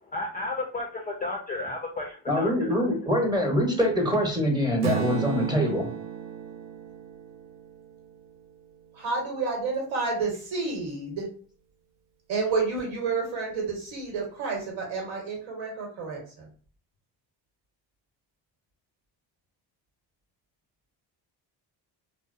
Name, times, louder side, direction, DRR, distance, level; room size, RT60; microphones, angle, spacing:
voice 1, 0.1-3.1, left 2 dB, 20° left, 0 dB, 0.3 m, -33 dB
voice 2, 2.3-5.9, equal, 10° right, 0 dB, 0.8 m, -24 dB
Strum, 4.8-9.0, right 8 dB, 60° right, 0.6 m, -34 dB
voice 3, 8.9-11.3 12.3-16.5, right 4 dB, 75° right, 0 dB, 1.1 m, -30 dB
2.5 x 2.0 x 2.4 m, 0.42 s
supercardioid pair, 75°, 47 cm